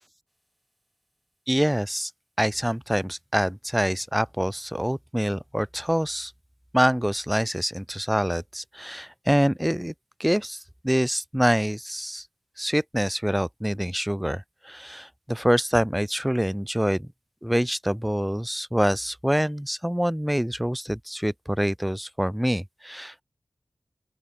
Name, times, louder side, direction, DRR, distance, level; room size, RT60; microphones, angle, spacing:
voice 1, 1.5-2.1 2.4-6.3 6.7-9.9 10.2-10.6 10.8-12.2 12.6-17.1 17.4-23.2, equal, 5° right, 0.5 m, -25 dB
open air
cardioid pair, 55°, 0 cm